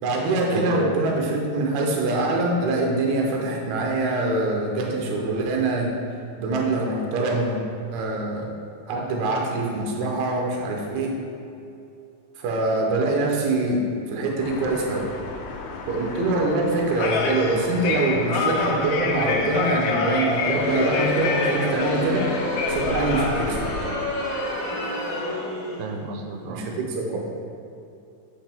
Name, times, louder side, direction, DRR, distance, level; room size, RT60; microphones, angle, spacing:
voice 1, 0.0-5.9 6.4-7.6 7.9-8.5 8.9-11.2 12.4-15.1 15.9-22.3 22.7-23.7 26.5-27.2, right 2 dB, 70° right, 0 dB, 2.0 m, -24 dB
sound 1, 14.4-23.8, left 4 dB, 80° left, 1.7 m, -28 dB
Crowd, 20.2-25.9, left 1 dB, 60° left, 1.3 m, -29 dB
voice 2, 25.8-26.6, right 4 dB, 90° right, 3 dB, 2.3 m, -32 dB
8.4 x 5.2 x 3.5 m, 2.6 s
omnidirectional pair, 3.9 m